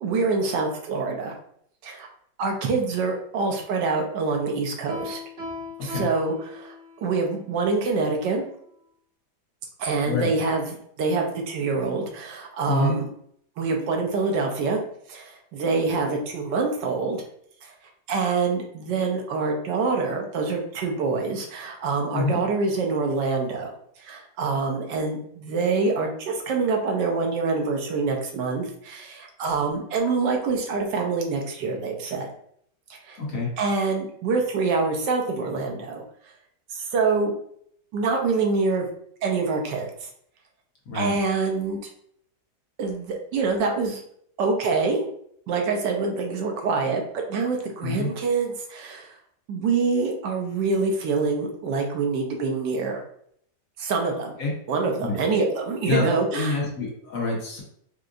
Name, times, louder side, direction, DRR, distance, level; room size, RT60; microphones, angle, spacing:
voice 1, 0.0-1.3 1.8-2.1 2.4-5.2 5.8-8.4 9.8-13.1 13.6-14.8 15.1-17.2 17.6-17.7 18.1-23.7 24.0-32.3 32.9-33.2 33.6-36.0 36.7-37.3 37.9-38.9 39.2-40.1 40.9-41.9 42.8-44.0 44.4-45.1 45.5-49.1 49.5-53.0 53.8-54.3 54.7-56.6, right 4 dB, 85° right, 2 dB, 1.4 m, -25 dB
Piano, 4.9-7.2, left 2 dB, 35° right, 1.5 m, -37 dB
voice 2, 12.7-13.0 22.1-22.4 33.2-33.5 40.9-41.1 47.8-48.1 54.4-54.5 55.0-55.2 55.9-57.6, left 3 dB, 55° left, -2 dB, 1.2 m, -26 dB
4.5 x 2.5 x 2.4 m, 0.66 s
omnidirectional pair, 1.8 m